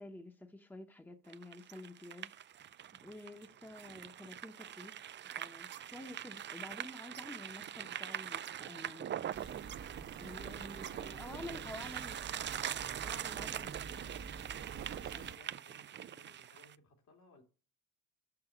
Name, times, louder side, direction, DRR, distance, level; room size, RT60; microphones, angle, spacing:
voice 1, 0.0-2.3 3.0-5.0 5.4-9.1 10.2-12.2 13.0-13.9 15.1-15.3, left 2 dB, 5° left, 1.0 m, -50 dB
sound 1, 1.3-16.7, right 10 dB, 40° right, 0.4 m, -43 dB
sound 2, 9.3-15.4, right 6 dB, 65° right, 1.3 m, -48 dB
voice 2, 10.7-12.4 15.0-17.4, left 2 dB, 75° left, 2.6 m, -63 dB
6.1 x 5.9 x 7.1 m
cardioid pair, 90°, 30 cm